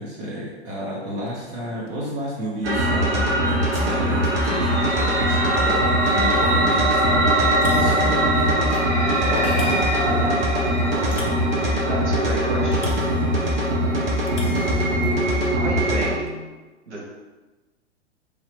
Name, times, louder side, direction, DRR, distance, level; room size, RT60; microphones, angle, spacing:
voice 1, 0.0-8.5 9.0-10.5, equal, 25° right, -5 dB, 0.5 m, -32 dB
sound 1, 1.3-1.5 1.9-2.0 2.4-2.5 3.6-3.7 4.2-4.3 4.7-4.8 5.3-5.4 6.5-6.7 7.0-7.1 7.3-16.5, left 3 dB, 90° left, 0.5 m, -33 dB
sound 2, 2.6-16.1, right 1 dB, 55° right, 1.1 m, -21 dB
sound 3, 3.7-11.4, left 2 dB, 20° left, 0.9 m, -36 dB
voice 2, 11.9-13.0 15.6-16.2 16.9-17.0, right 1 dB, 75° right, -3 dB, 1.2 m, -31 dB
3.0 x 2.8 x 3.0 m, 1.2 s
figure-of-eight pair, 100°, 35 cm